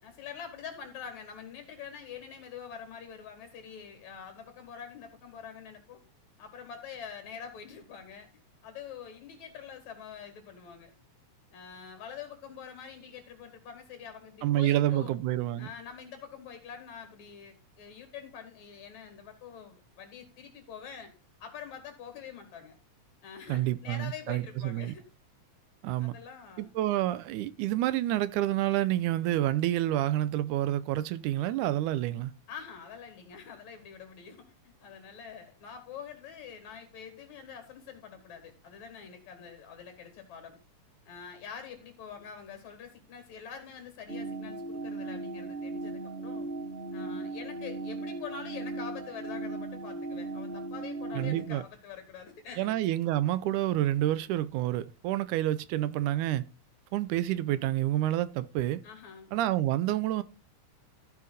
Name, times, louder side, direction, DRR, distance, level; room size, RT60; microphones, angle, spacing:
voice 1, 0.0-6.0 6.4-8.3 8.6-10.9 11.5-15.2 15.6-21.1 21.4-22.7 23.2-25.1 26.0-26.7 32.5-40.6 41.1-46.5 46.9-52.7 58.8-59.3, left 7 dB, 70° left, 3.4 m, -45 dB
voice 2, 14.4-15.7 23.5-24.9 25.8-26.1 26.6-32.3 51.2-51.6 52.6-56.5 56.9-58.8 59.3-60.2, right 14 dB, 85° right, 2.1 m, -28 dB
sound 1, 44.1-51.5, right 2 dB, 20° right, 2.3 m, -37 dB
14.0 x 5.6 x 4.0 m
omnidirectional pair, 3.5 m